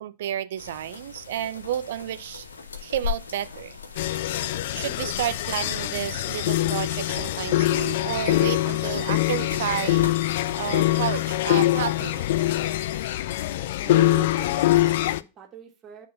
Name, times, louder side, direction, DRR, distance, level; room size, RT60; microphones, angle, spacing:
voice 1, 0.0-2.5 2.8-3.8 4.7-10.0 10.6-12.2, right 11 dB, 60° right, 0.4 m, -31 dB
sound 1, 0.6-13.0, left 6 dB, 75° left, 1.0 m, -39 dB
sound 2, 4.0-15.2, left 15 dB, 55° left, 0.4 m, -24 dB
Brass instrument, 8.7-12.8, left 5 dB, 10° left, 3.8 m, -54 dB
voice 2, 13.8-16.1, right 9 dB, 25° right, 1.8 m, -41 dB
9.3 x 3.7 x 5.4 m
figure-of-eight pair, 90°, 0 cm